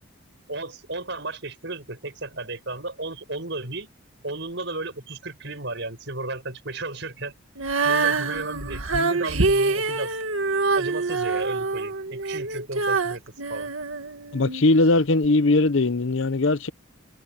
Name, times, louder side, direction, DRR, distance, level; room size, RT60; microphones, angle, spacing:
voice 1, 0.5-3.9 4.2-7.3 7.8-10.2 10.7-13.2 13.5-13.7, right 2 dB, 55° right, 6.9 m, -34 dB
Female singing, 7.6-14.6 15.2-15.3, right 3 dB, 75° right, 2.0 m, -25 dB
voice 2, 14.3-16.7, left 2 dB, 65° left, 0.8 m, -20 dB
head